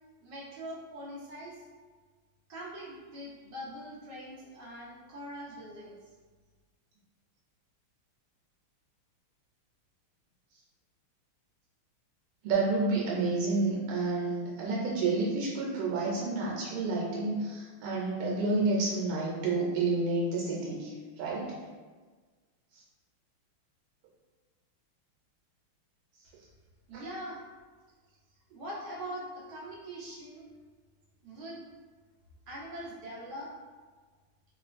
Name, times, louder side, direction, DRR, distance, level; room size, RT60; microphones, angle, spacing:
voice 1, 0.2-1.6 2.5-6.0 26.2-26.3 26.9-27.4 28.5-30.5 31.2-31.6 32.5-33.5, equal, 65° right, -5 dB, 1.1 m, -42 dB
voice 2, 12.4-21.6 22.7-22.8, right 3 dB, 90° right, -4 dB, 1.5 m, -30 dB
3.7 x 2.4 x 2.4 m, 1.4 s
omnidirectional pair, 2.3 m